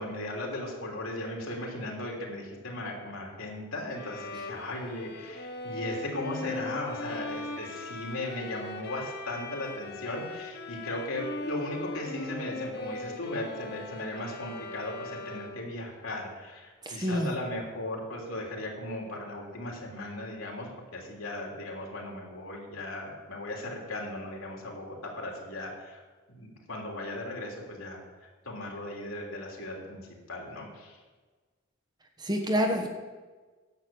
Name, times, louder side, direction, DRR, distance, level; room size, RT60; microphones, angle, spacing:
voice 1, 0.0-26.0 26.3-31.0, left 1 dB, 80° left, -1 dB, 3.2 m, -37 dB
Bowed string instrument, 3.9-15.8, left 2 dB, 50° left, 1.0 m, -39 dB
voice 2, 16.8-17.3 32.2-32.9, equal, 20° right, 3 dB, 1.1 m, -27 dB
10.5 x 8.2 x 7.0 m, 1.4 s
head